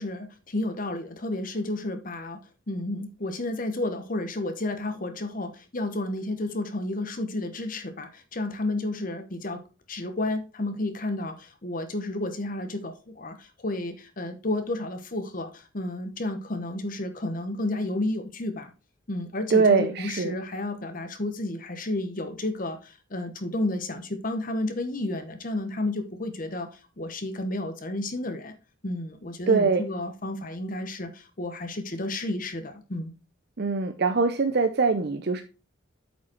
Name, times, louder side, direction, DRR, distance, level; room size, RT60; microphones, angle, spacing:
voice 1, 0.0-2.4 2.7-9.6 9.9-18.7 19.1-28.5 28.8-33.1, left 2 dB, 40° left, 0.9 m, -31 dB
voice 2, 19.5-20.4 29.5-29.8 33.6-35.4, right 4 dB, 50° right, 0.6 m, -22 dB
8.1 x 5.1 x 4.4 m
head